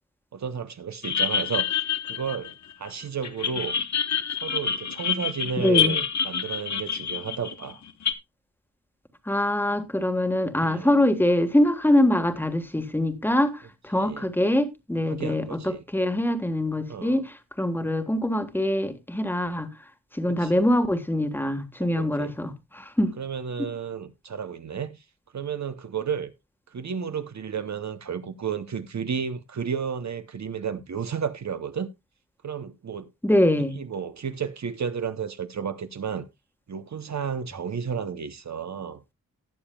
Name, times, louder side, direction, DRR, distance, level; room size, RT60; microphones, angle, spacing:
voice 1, 0.3-3.8 4.4-7.8 10.6-10.9 14.0-14.3 15.1-15.8 16.9-17.2 20.3-20.7 21.8-22.3 23.2-25.0 25.3-26.3 26.7-31.9 32.4-33.1 33.8-36.2 36.7-39.0, right 7 dB, 55° right, 0.8 m, -32 dB
sound 1, 1.0-2.9 3.2-8.1, left 7 dB, 55° left, 1.0 m, -27 dB
voice 2, 5.6-6.0 9.3-19.7 20.1-23.2 23.6-23.7 33.2-33.8, left 1 dB, 5° left, 1.4 m, -24 dB
19.0 x 7.1 x 2.3 m
wide cardioid pair, 85°, 34 cm